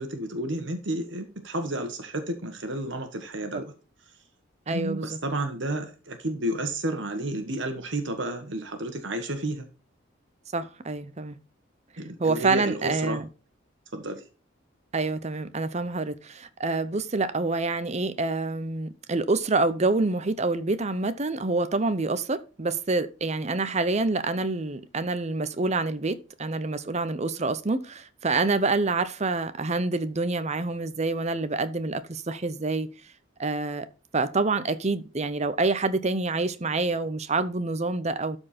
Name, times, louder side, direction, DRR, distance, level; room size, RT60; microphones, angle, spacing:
voice 1, 0.0-3.7 4.7-9.7 12.0-13.2 13.9-14.2, right 1 dB, 65° right, 1.4 m, -31 dB
voice 2, 4.7-5.2 10.5-11.4 12.2-13.2 14.9-32.9 33.4-33.9 34.1-38.4, right 3 dB, 35° right, 0.7 m, -27 dB
12.5 x 4.5 x 4.3 m
head